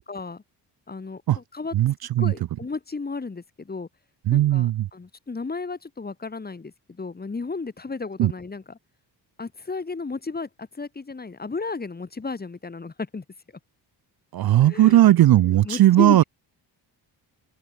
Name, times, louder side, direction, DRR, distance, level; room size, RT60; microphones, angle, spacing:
voice 1, 0.1-0.4 0.9-1.7 2.2-3.9 4.3-8.8 9.4-13.2 14.6-15.0 15.4-16.2, left 4 dB, 20° left, 3.3 m, -33 dB
voice 2, 1.7-2.3 4.3-4.9 8.2-8.3 14.3-16.2, right 13 dB, 60° right, 0.6 m, -17 dB
open air
wide cardioid pair, 155°, 43 cm